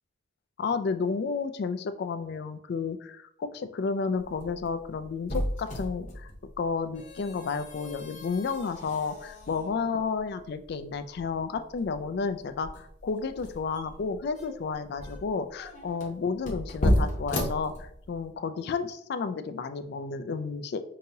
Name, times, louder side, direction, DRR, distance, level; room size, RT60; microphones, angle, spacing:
voice 1, 0.6-6.3 6.6-20.8, left 5 dB, 55° left, 10 dB, 0.3 m, -32 dB
sound 1, 4.2-18.3, equal, 40° left, 0.9 m, -34 dB
5.3 x 2.8 x 2.7 m, 0.71 s
head